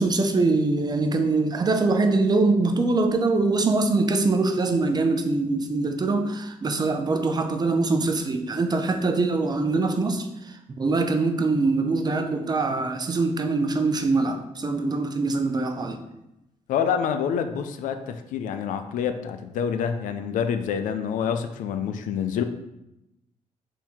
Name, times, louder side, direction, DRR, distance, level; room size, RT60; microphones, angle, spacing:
voice 1, 0.0-16.0, right 3 dB, 30° right, 5 dB, 0.5 m, -23 dB
voice 2, 16.7-22.4, left 7 dB, 85° left, 8 dB, 0.4 m, -27 dB
3.6 x 2.8 x 4.3 m, 0.88 s
cardioid pair, 90°, 13 cm